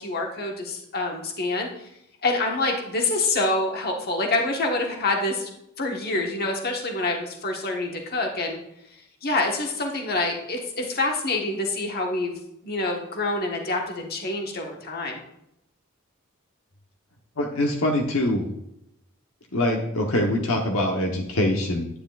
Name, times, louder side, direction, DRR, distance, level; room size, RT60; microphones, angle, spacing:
voice 1, 0.0-1.9 2.2-5.5 5.8-8.6 8.9-12.3 12.6-15.2, left 2 dB, 45° left, 1 dB, 1.4 m, -26 dB
voice 2, 17.4-18.5 19.5-21.9, left 1 dB, 75° left, 1 dB, 1.1 m, -24 dB
9.8 x 9.7 x 2.4 m, 0.81 s
head